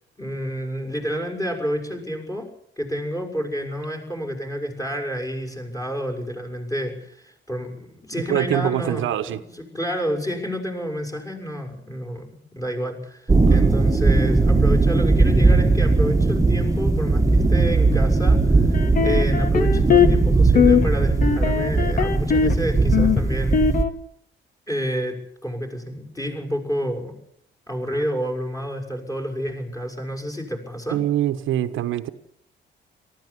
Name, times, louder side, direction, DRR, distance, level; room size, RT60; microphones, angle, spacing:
voice 1, 0.2-2.5 2.8-23.6 24.7-27.2 27.7-31.0, equal, 15° left, 5 dB, 6.5 m, -29 dB
voice 2, 8.1-9.4 13.5-13.7 30.9-32.1, right 12 dB, 80° right, 9 dB, 1.2 m, -24 dB
sound 1, 13.3-23.8, right 3 dB, 15° right, 1.8 m, -18 dB
sound 2, 18.7-20.2 20.6-20.9 21.2-22.6 22.9-23.9, left 7 dB, 45° left, 1.7 m, -20 dB
18.5 x 14.5 x 9.9 m, 0.71 s
cardioid pair, 90°, 20 cm